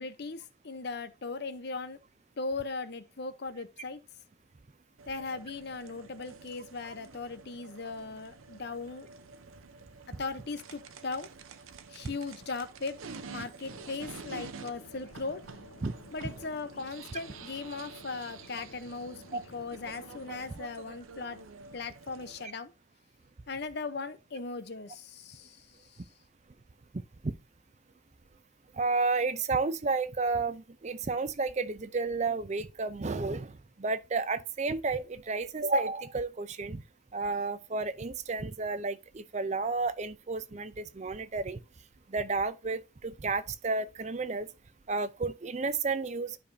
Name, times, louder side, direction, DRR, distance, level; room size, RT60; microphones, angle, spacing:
voice 1, 0.0-2.0 2.4-4.0 5.1-9.1 10.1-11.3 11.9-15.4 16.1-21.4 21.7-22.7 23.5-25.6, left 3 dB, 55° left, 0.7 m, -38 dB
sound 1, 5.0-22.4, right 5 dB, 90° right, 0.7 m, -49 dB
sound 2, 13.7-20.5, left 2 dB, 80° left, 0.9 m, -54 dB
voice 2, 28.7-36.8 37.1-41.6 42.1-44.5 44.9-46.4, right 3 dB, 35° right, 0.5 m, -31 dB
11.0 x 5.0 x 2.7 m
head